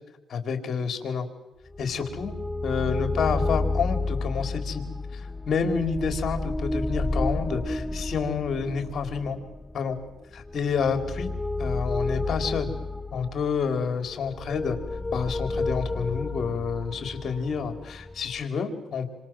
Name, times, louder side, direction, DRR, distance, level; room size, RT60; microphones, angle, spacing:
voice 1, 0.3-1.3 1.8-2.3 2.6-4.8 5.1-9.4 9.7-10.0 10.3-11.3 11.6-12.7 13.1-14.8 15.1-19.1, left 6 dB, 55° left, 7 dB, 4.4 m, -29 dB
sound 1, 1.7-18.4, left 2 dB, 15° left, 0.9 m, -31 dB
28.0 x 26.0 x 7.8 m, 1.0 s
cardioid pair, 90°, 0 cm